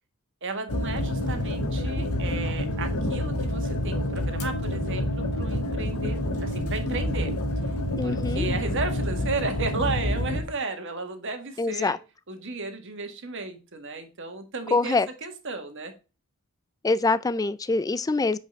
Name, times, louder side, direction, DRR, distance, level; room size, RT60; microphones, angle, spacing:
voice 1, 0.4-7.3 8.0-12.0 12.3-15.9, right 3 dB, 60° right, 1.6 m, -34 dB
sound 1, 0.7-10.4, left 1 dB, 85° left, 1.6 m, -28 dB
voice 2, 8.0-8.5 11.6-12.0 14.7-15.1 16.8-18.4, left 3 dB, 15° left, 0.3 m, -24 dB
8.2 x 5.2 x 3.2 m
head